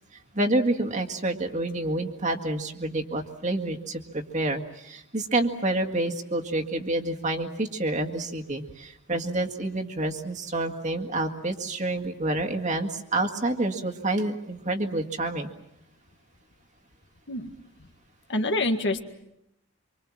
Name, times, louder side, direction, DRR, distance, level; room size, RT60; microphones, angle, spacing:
voice 1, 0.3-15.5, right 2 dB, 35° right, 2 dB, 1.9 m, -28 dB
voice 2, 18.3-19.0, left 2 dB, 55° left, 6 dB, 1.9 m, -26 dB
26.0 x 24.5 x 7.5 m, 0.81 s
head